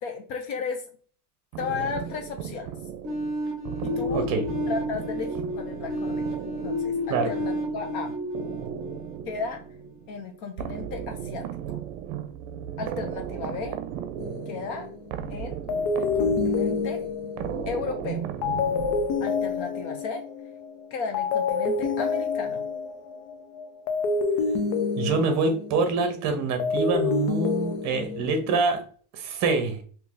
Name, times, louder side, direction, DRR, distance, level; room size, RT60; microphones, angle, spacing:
voice 1, 0.0-0.8 1.6-2.7 3.8-4.3 4.7-6.2 6.6-8.2 9.3-9.6 10.1-11.6 12.8-13.8 14.5-14.9 15.3-15.6 16.0-17.0 17.7-18.3 19.2-20.2 20.9-22.6, left 5 dB, 45° left, 5 dB, 0.5 m, -34 dB
sound 1, 1.5-19.6, right 9 dB, 70° right, 0.6 m, -36 dB
sound 2, 3.0-9.8, left 1 dB, 10° right, 1.0 m, -31 dB
voice 2, 4.1-4.4 7.1-7.3 25.0-28.8 29.1-29.8, right 4 dB, 35° right, 6 dB, 0.8 m, -25 dB
sound 3, 14.2-15.2 15.7-20.8 21.1-26.1 26.4-28.6, left 4 dB, 70° left, 0.8 m, -28 dB
2.8 x 2.7 x 3.8 m, 0.43 s
cardioid pair, 170°, 47 cm